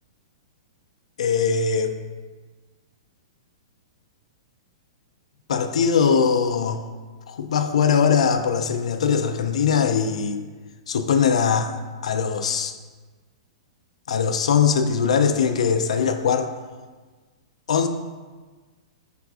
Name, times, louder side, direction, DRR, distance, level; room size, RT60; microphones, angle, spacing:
voice 1, 1.2-2.0 5.5-6.8 7.3-10.4 10.9-11.7 12.0-12.7 14.1-16.5 17.7-17.9, left 6 dB, 85° left, 8 dB, 0.3 m, -21 dB
4.8 x 3.3 x 2.4 m, 1.4 s
hypercardioid pair, 180°, 3 cm